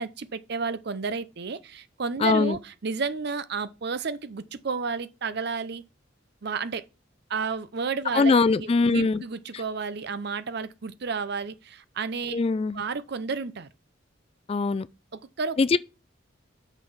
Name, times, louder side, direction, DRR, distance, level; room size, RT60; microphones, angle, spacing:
voice 1, 0.0-5.8 6.4-6.8 7.3-12.4 12.7-13.7 15.1-15.8, right 5 dB, 60° right, 0.6 m, -32 dB
voice 2, 2.2-2.6 8.1-9.2 12.3-12.8 14.5-14.9 15.6-15.8, left 4 dB, 30° left, 0.3 m, -22 dB
6.2 x 5.3 x 5.6 m
head